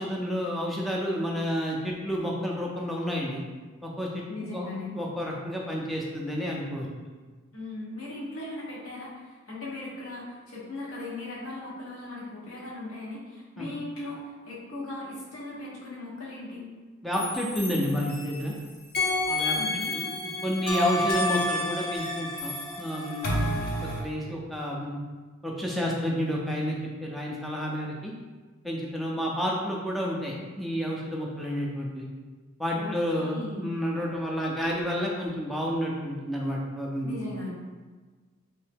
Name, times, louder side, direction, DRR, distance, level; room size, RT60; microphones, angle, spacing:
voice 1, 0.0-3.4 3.8-4.7 4.9-6.9 13.6-13.7 17.0-18.5 19.3-19.6 19.9-20.1 20.4-23.5 23.8-25.0 25.4-26.8 27.0-28.1 28.6-32.1 32.6-37.3, equal, ahead, -3 dB, 0.4 m, -30 dB
voice 2, 4.3-4.9 7.5-16.7 19.5-20.0 32.7-33.7 37.0-37.5, left 2 dB, 70° left, -6 dB, 1.1 m, -38 dB
sound 1, 17.1-18.5 18.9-24.0, left 1 dB, 45° left, 0.6 m, -29 dB
3.1 x 2.7 x 3.4 m, 1.4 s
head